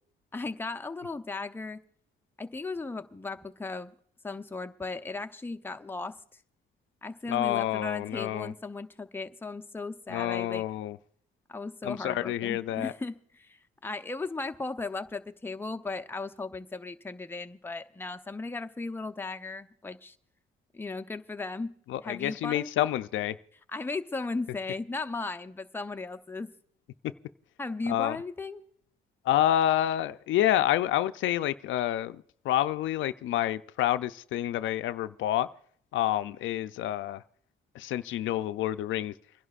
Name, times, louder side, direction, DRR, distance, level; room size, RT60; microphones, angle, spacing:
voice 1, 0.3-1.8 2.4-3.9 4.2-6.2 7.0-10.6 11.5-20.2 20.7-21.7 22.0-22.8 23.7-26.5 27.6-28.6, left 3 dB, 10° left, 7 dB, 0.6 m, -36 dB
voice 2, 7.3-8.5 10.1-11.0 11.8-12.9 21.9-23.3 27.9-28.2 29.2-35.5 35.9-37.2 37.7-39.1, left 12 dB, 75° left, 12 dB, 0.4 m, -28 dB
30.0 x 11.0 x 2.4 m, 0.62 s
cardioid pair, 90°, 20 cm